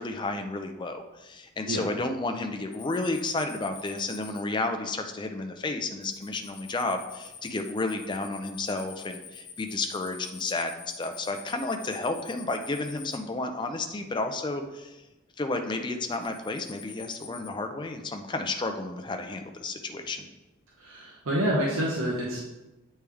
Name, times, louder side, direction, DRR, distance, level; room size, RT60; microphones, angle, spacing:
voice 1, 0.0-15.0 15.4-20.3, left 2 dB, 20° left, 5 dB, 0.4 m, -32 dB
sound 1, 2.7-4.4 6.0-13.2 16.0-17.5, left 7 dB, 65° left, 0.8 m, -47 dB
voice 2, 20.8-22.4, right 1 dB, 85° right, -4 dB, 0.9 m, -28 dB
8.4 x 3.2 x 3.4 m, 1.0 s
head